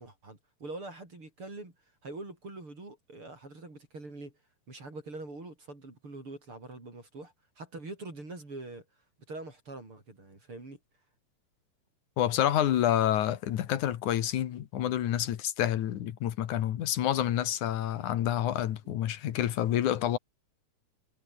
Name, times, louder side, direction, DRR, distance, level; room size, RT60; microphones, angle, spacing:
voice 1, 0.0-1.7 2.0-4.3 4.7-8.9 9.3-10.8, right 2 dB, 45° right, 7.2 m, -44 dB
voice 2, 12.2-20.2, left 11 dB, 90° left, 2.9 m, -28 dB
omnidirectional pair, 3.4 m